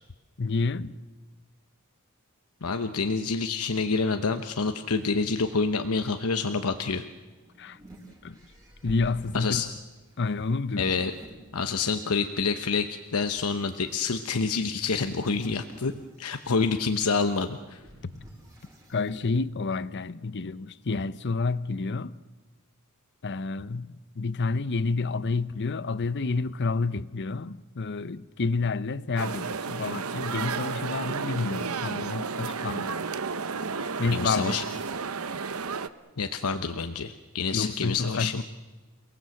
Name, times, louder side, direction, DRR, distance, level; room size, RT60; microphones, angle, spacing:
voice 1, 0.4-1.0 7.6-7.8 8.2-8.4 8.8-9.7 10.2-10.9 18.0-18.1 18.9-22.2 23.2-33.2 34.0-34.6 37.5-38.4, left 3 dB, 55° left, 0.7 m, -29 dB
voice 2, 2.6-7.1 9.3-9.7 10.8-11.1 11.5-15.9 16.2-17.8 34.1-34.6 36.2-38.4, left 4 dB, 80° left, 1.0 m, -27 dB
sound 1, 7.2-12.0 12.6-19.3, equal, 15° right, 5.0 m, -51 dB
sound 2, 29.2-35.9, right 5 dB, 70° right, 0.9 m, -32 dB
29.0 x 18.5 x 7.8 m
head